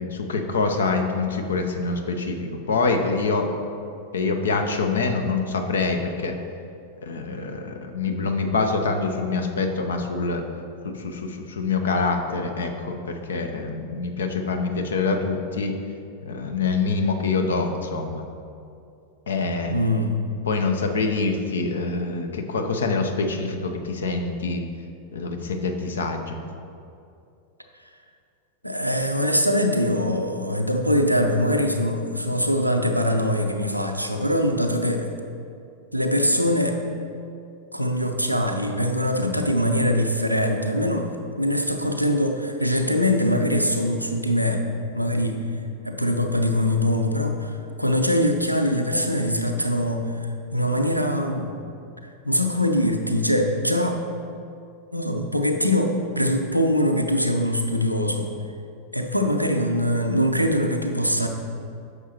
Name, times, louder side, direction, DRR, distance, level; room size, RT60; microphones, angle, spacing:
voice 1, 0.0-3.5 4.1-6.3 7.0-10.4 10.8-15.8 16.3-18.3 19.3-19.8 20.4-24.6 25.1-26.4 39.1-39.4, left 4 dB, 65° left, 5 dB, 0.7 m, -25 dB
voice 2, 19.7-20.1 28.6-35.2 35.9-36.8 37.7-44.7 44.9-45.4 45.8-50.3 50.5-51.5 52.2-54.0 54.9-58.3 58.9-61.3, equal, 90° right, 4 dB, 0.6 m, -23 dB
9.3 x 6.4 x 2.9 m, 2.5 s
figure-of-eight pair, 90°, 0 cm